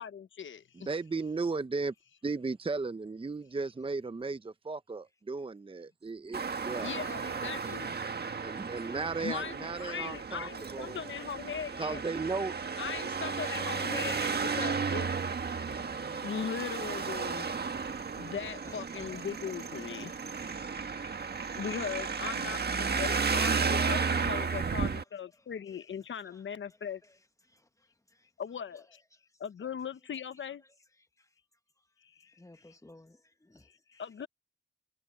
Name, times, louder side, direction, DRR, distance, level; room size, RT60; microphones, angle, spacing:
voice 1, 0.0-0.9 6.5-8.0 9.2-12.0 12.8-15.2 15.5-20.7 21.0-27.0 28.4-29.0 29.4-30.6 32.0-32.3 32.6-32.7 33.6-34.3, left 7 dB, 75° left, 1.1 m, -40 dB
voice 2, 0.8-1.9 2.2-6.9 8.4-11.0 11.8-12.6, right 4 dB, 25° right, 0.7 m, -35 dB
Traffic noise roadway noise, 6.3-25.0, right 5 dB, 55° right, 1.5 m, -33 dB
voice 3, 32.3-34.0, left 1 dB, 15° left, 1.6 m, -57 dB
cardioid pair, 60°, 20 cm